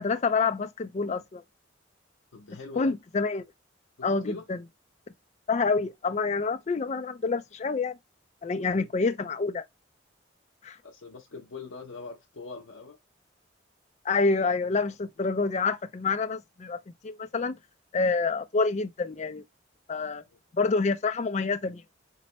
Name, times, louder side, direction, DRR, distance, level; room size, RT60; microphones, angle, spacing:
voice 1, 0.0-1.4 2.8-3.4 4.0-4.6 5.5-8.0 8.4-9.6 10.6-10.8 14.1-17.6 17.9-19.4 19.9-20.2 20.5-21.8, left 4 dB, 35° left, 0.4 m, -27 dB
voice 2, 2.3-2.9 4.0-4.5 8.6-8.9 10.8-13.0 20.3-20.4, left 4 dB, 80° left, 0.6 m, -43 dB
4.4 x 2.1 x 2.9 m
head